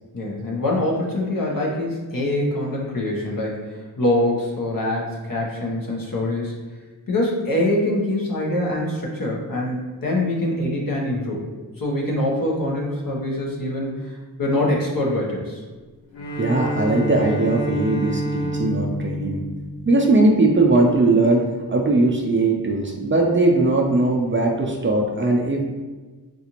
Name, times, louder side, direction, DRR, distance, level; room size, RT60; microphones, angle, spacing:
voice 1, 0.1-6.5 7.1-11.5 11.8-15.6, left 1 dB, 60° left, -3 dB, 0.9 m, -24 dB
Bowed string instrument, 16.1-20.4, right 1 dB, 85° left, 0.6 m, -28 dB
voice 2, 16.4-19.4 19.8-25.6, right 2 dB, 30° right, -1 dB, 0.4 m, -19 dB
3.8 x 2.5 x 2.9 m, 1.3 s
wide cardioid pair, 90°, 39 cm